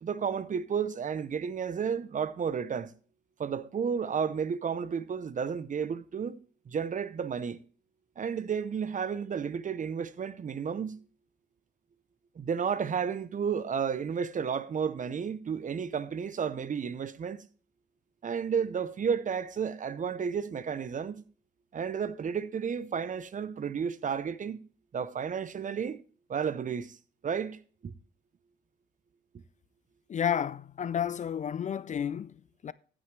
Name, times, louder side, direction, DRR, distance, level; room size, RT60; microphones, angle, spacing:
voice 1, 0.0-2.9 3.4-6.4 6.7-7.6 8.2-11.0 12.4-17.4 18.2-21.2 21.7-24.6 24.9-26.0 26.3-27.0 27.2-27.9, right 7 dB, 40° right, 0.8 m, -32 dB
voice 2, 30.1-32.7, left 8 dB, 40° left, 0.4 m, -31 dB
15.5 x 6.1 x 3.2 m
cardioid pair, 90°, 20 cm